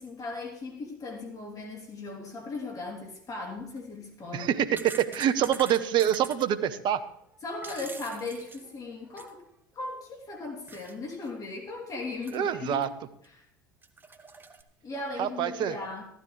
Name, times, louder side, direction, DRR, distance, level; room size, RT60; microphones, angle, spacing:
voice 1, 0.0-4.5 7.4-9.4 9.7-12.9 13.3-13.4 14.8-16.0, left 3 dB, 35° left, 0 dB, 3.2 m, -37 dB
sound 1, 3.6-3.8 4.4-6.5 7.3-9.4 9.8-9.9 10.7-11.0 11.2-11.3 12.2-12.8 13.2-13.3 13.8-14.6, right 4 dB, 20° right, 1.2 m, -45 dB
voice 2, 4.3-7.0 12.3-12.9 15.2-15.7, right 10 dB, 45° right, 13 dB, 1.0 m, -26 dB
15.0 x 12.5 x 3.3 m, 0.73 s
hypercardioid pair, 80°, 11 cm